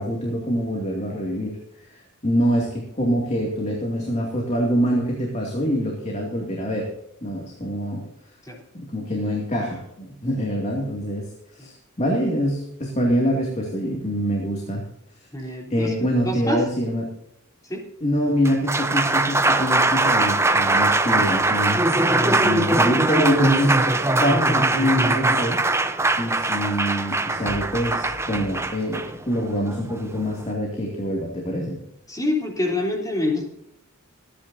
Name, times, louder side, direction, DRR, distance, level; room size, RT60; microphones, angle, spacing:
voice 1, 0.0-6.9 7.2-8.0 8.7-11.2 11.5-14.8 15.4-17.1 18.0-21.8 22.3-23.8 24.2-25.6 26.2-31.8, equal, 30° left, -1 dB, 2.5 m, -25 dB
voice 2, 15.3-16.6 17.6-17.8 22.1-22.4 32.1-33.5, left 2 dB, 15° left, 0 dB, 3.5 m, -26 dB
Applause, 18.3-30.5, right 2 dB, 10° right, 0.7 m, -21 dB
25.0 x 10.0 x 2.8 m, 0.79 s
head